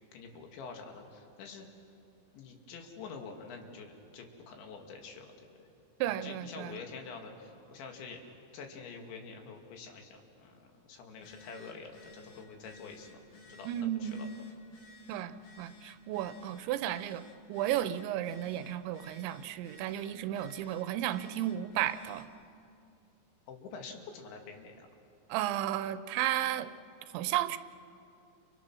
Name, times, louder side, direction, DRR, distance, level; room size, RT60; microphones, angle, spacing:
voice 1, 0.1-1.7 2.3-5.3 5.6-5.7 6.1-8.2 8.5-13.2 13.5-13.7 14.0-14.3 23.5-24.9, left 5 dB, 80° left, 3 dB, 4.5 m, -47 dB
voice 2, 6.0-6.8 13.7-14.3 15.1-17.2 17.5-22.3 25.3-26.7 27.1-27.6, right 12 dB, 85° right, 13 dB, 3.1 m, -33 dB
Telephone, 11.2-22.4, left 2 dB, 60° left, 4.3 m, -56 dB
30.0 x 29.0 x 6.2 m, 2.6 s
omnidirectional pair, 5.2 m